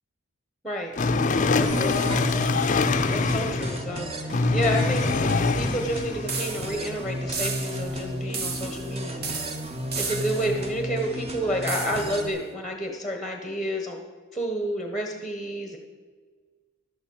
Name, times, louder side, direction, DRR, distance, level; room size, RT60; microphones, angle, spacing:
sound 1, 1.0-3.9 4.3-6.3, left 3 dB, 35° left, 0.4 m, -24 dB
voice 1, 1.5-2.0 3.1-5.1 5.5-9.3 10.1-14.0 14.3-15.8, equal, ahead, 3 dB, 1.1 m, -30 dB
sound 2, 1.6-12.3, equal, 30° right, 1.0 m, -33 dB
sound 3, 6.3-6.9 7.3-8.0 8.3-8.9 9.2-10.6 11.7-12.2, right 5 dB, 45° right, 1.2 m, -33 dB
11.5 x 7.1 x 7.1 m, 1.5 s
head